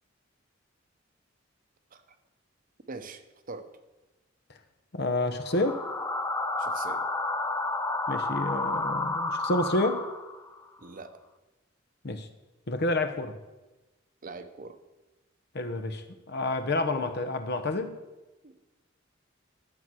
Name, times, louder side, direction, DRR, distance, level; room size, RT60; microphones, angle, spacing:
voice 1, 2.9-3.7 6.6-7.1 10.8-11.1 14.2-14.8 18.4-18.7, right 3 dB, 45° right, 9 dB, 0.9 m, -43 dB
voice 2, 4.9-5.8 8.1-10.0 12.0-12.3 12.7-13.3 15.5-17.9, left 2 dB, 55° left, 9 dB, 1.0 m, -29 dB
sound 1, 5.5-10.5, left 2 dB, 15° left, 0.6 m, -31 dB
12.0 x 7.5 x 6.2 m, 1.1 s
head